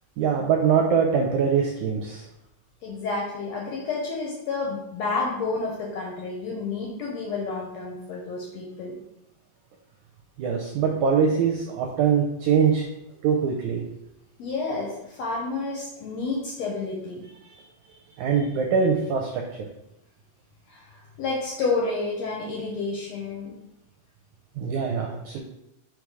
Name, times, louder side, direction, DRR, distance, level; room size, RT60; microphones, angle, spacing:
voice 1, 0.2-2.2 10.4-12.8 13.2-13.8 18.2-19.4 24.6-25.4, right 6 dB, 80° right, 1 dB, 1.8 m, -23 dB
voice 2, 2.8-9.0 14.4-17.2 20.7-23.6, left 3 dB, 70° left, -2 dB, 1.6 m, -30 dB
4.8 x 4.1 x 4.8 m, 0.87 s
omnidirectional pair, 4.0 m